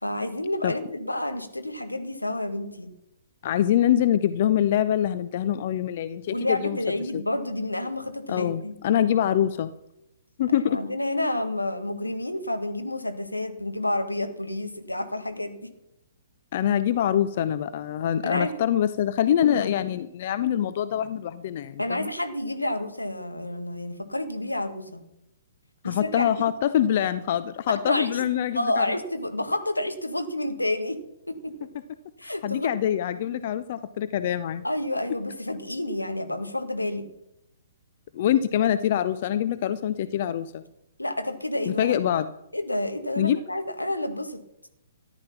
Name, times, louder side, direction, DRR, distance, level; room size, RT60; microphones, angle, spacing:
voice 1, 0.0-2.9 6.3-8.8 10.6-15.7 18.2-18.6 21.8-25.0 25.8-26.4 27.9-28.2 28.5-31.7 32.2-32.7 34.6-37.1 41.0-41.9 42.5-44.4, left 1 dB, 85° left, 8 dB, 1.8 m, -29 dB
voice 2, 3.4-6.8 7.1-7.2 8.3-9.7 10.4-10.8 16.5-22.1 25.8-28.9 32.2-34.6 38.1-40.6 41.7-42.3 43.2-43.4, left 10 dB, 40° left, 13 dB, 0.6 m, -24 dB
14.0 x 11.0 x 5.8 m, 0.86 s
figure-of-eight pair, 125°, 0 cm